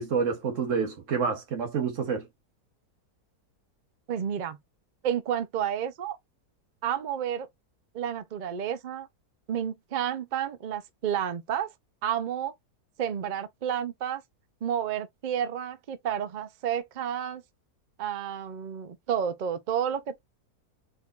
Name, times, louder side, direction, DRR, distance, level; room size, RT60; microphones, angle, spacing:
voice 1, 0.0-2.3, right 5 dB, 55° right, 1.3 m, -28 dB
voice 2, 4.1-4.6 5.0-6.2 6.8-7.5 7.9-9.1 9.5-11.7 12.0-12.5 13.0-14.2 14.6-17.4 18.0-20.2, right 9 dB, 85° right, 0.4 m, -30 dB
4.5 x 3.8 x 2.4 m
omnidirectional pair, 1.7 m